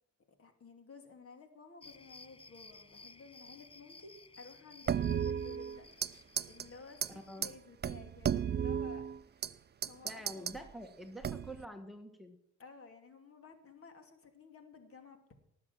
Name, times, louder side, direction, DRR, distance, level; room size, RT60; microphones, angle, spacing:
voice 1, 0.4-5.9 6.5-10.6 12.6-15.3, left 4 dB, 50° left, 6 dB, 2.8 m, -54 dB
sound 1, 1.8-7.5, left 3 dB, 20° left, 0.9 m, -56 dB
sound 2, 4.9-6.1 6.4-6.6 7.0-7.1 7.4-7.5 7.8-9.5 9.8-10.6 11.2-11.6, right 8 dB, 35° right, 0.5 m, -34 dB
voice 2, 10.0-12.4, equal, ahead, 6 dB, 1.6 m, -47 dB
18.5 x 7.3 x 7.3 m, 0.73 s
cardioid pair, 90°, 30 cm